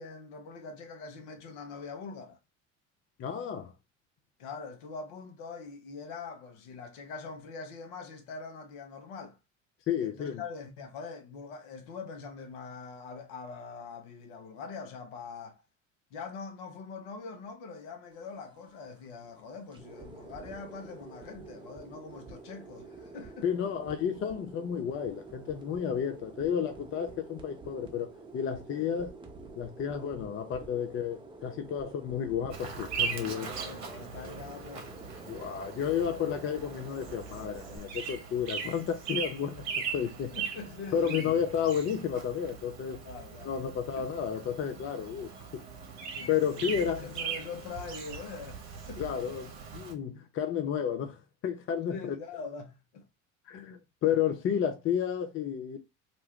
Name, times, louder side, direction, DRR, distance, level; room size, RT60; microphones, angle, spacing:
voice 1, 0.0-2.4 4.4-9.4 10.0-15.6 16.1-23.5 25.8-25.9 28.7-28.9 33.2-34.9 40.3-41.4 43.0-43.6 44.0-44.1 46.1-49.0 51.9-53.1, left 4 dB, 60° left, 0.8 m, -43 dB
voice 2, 3.2-3.7 9.9-10.4 23.4-29.1 29.6-33.6 35.3-40.3 40.9-43.0 43.4-45.6 46.3-47.0 49.0-52.2 53.5-55.8, left 8 dB, 30° left, 0.5 m, -32 dB
sound 1, 18.1-37.8, right 3 dB, 10° right, 0.7 m, -49 dB
Bird vocalization bird call bird song, 32.5-49.9, right 6 dB, 45° right, 0.9 m, -40 dB
2.5 x 2.2 x 3.4 m
figure-of-eight pair, 65°, 40 cm